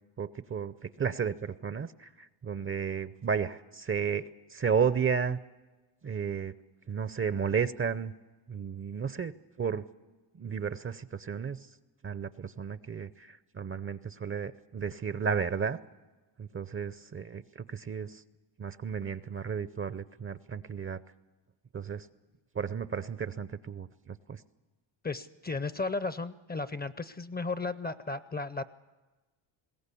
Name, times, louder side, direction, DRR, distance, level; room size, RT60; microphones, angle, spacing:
voice 1, 0.2-5.4 6.0-6.5 6.9-8.1 8.5-9.3 9.6-9.8 10.3-11.7 12.0-15.8 16.4-18.2 18.6-21.0 21.7-22.1 22.5-24.4, right 6 dB, 25° right, 15 dB, 0.6 m, -33 dB
voice 2, 25.0-28.6, left 3 dB, 20° left, 15 dB, 0.6 m, -34 dB
21.0 x 17.0 x 8.4 m, 1.2 s
supercardioid pair, 80°, 50 cm